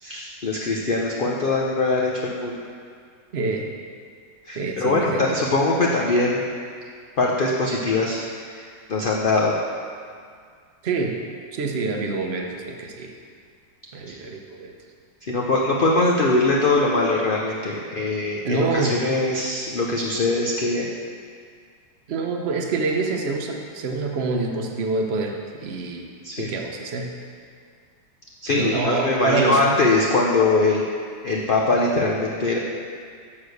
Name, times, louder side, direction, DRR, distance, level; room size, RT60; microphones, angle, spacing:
voice 1, 0.0-2.6 4.5-6.4 7.2-9.5 15.3-20.8 26.2-26.5 28.4-30.8 31.2-32.6, left 2 dB, 60° left, -3 dB, 0.5 m, -22 dB
voice 2, 3.3-3.7 4.5-5.4 10.8-11.2 11.5-13.1 13.9-14.7 18.4-19.0 22.1-26.1 26.4-27.1 28.5-29.6, right 3 dB, 45° right, 2 dB, 0.9 m, -26 dB
7.3 x 6.4 x 6.5 m, 2.1 s
omnidirectional pair, 2.0 m